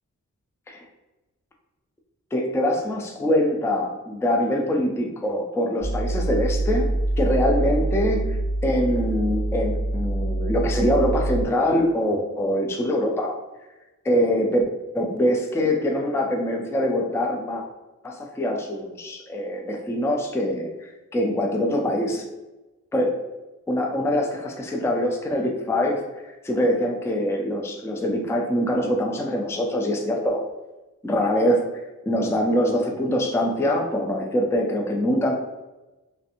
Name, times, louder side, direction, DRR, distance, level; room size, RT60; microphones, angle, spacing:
voice 1, 2.3-6.9 7.2-13.4 14.0-14.7 14.9-17.6 18.0-22.3 22.9-23.2 23.7-30.5 31.0-35.3, equal, 10° left, 2 dB, 0.4 m, -24 dB
sound 1, 5.8-11.4, right 2 dB, 70° left, 1.4 m, -25 dB
3.1 x 2.5 x 2.8 m, 1.1 s
wide cardioid pair, 95°, 31 cm